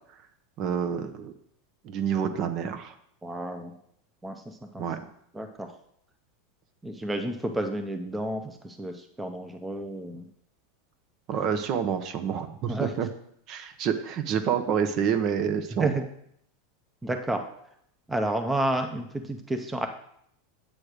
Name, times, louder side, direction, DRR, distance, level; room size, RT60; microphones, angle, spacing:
voice 1, 0.6-1.3 1.8-2.9 4.8-5.0 11.3-13.1 13.5-16.0, right 7 dB, 45° right, 9 dB, 0.8 m, -28 dB
voice 2, 3.2-3.7 4.2-4.9 5.3-5.7 6.8-10.3 12.7-12.9 15.8-16.0 17.0-17.4 18.1-19.9, right 1 dB, 10° right, 5 dB, 0.7 m, -31 dB
8.7 x 3.2 x 6.5 m, 0.70 s
supercardioid pair, 125°, 0 cm